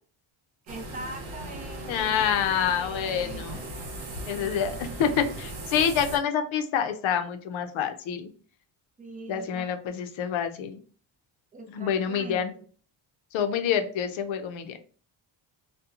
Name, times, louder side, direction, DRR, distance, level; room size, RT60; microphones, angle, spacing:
voice 1, 0.7-3.4 4.0-5.0 9.0-10.0 11.5-12.6, right 2 dB, 20° right, 3 dB, 0.3 m, -43 dB
sound 1, 0.7-6.2, right 1 dB, 70° right, 0.9 m, -38 dB
voice 2, 1.9-3.6 4.3-8.3 9.3-10.8 11.7-12.5 13.3-14.8, left 8 dB, 80° left, 8 dB, 0.6 m, -27 dB
2.8 x 2.2 x 2.3 m, 0.42 s
cardioid pair, 155°, 47 cm